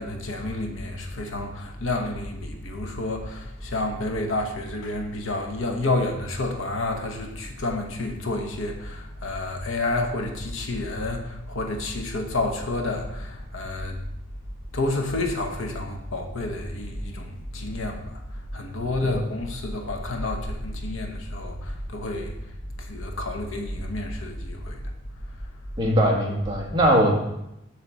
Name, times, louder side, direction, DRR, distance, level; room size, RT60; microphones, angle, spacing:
voice 1, 0.0-14.0 14.7-22.4 22.8-24.8, left 2 dB, 70° left, 3 dB, 1.0 m, -29 dB
voice 2, 25.8-27.2, equal, 20° right, -2 dB, 1.3 m, -21 dB
7.0 x 3.3 x 6.0 m, 0.86 s
head